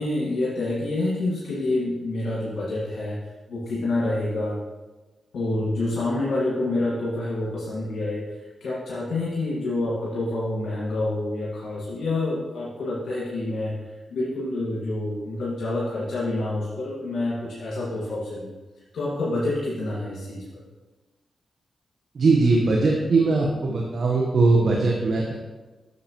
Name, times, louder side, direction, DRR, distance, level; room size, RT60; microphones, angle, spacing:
voice 1, 0.0-3.2 3.5-4.6 5.3-13.7 14.1-18.5 18.9-20.4, left 2 dB, 80° left, -7 dB, 1.9 m, -27 dB
voice 2, 22.1-25.3, right 3 dB, 65° right, -1 dB, 1.0 m, -20 dB
9.4 x 6.8 x 3.0 m, 1.2 s
cardioid pair, 50°, 0 cm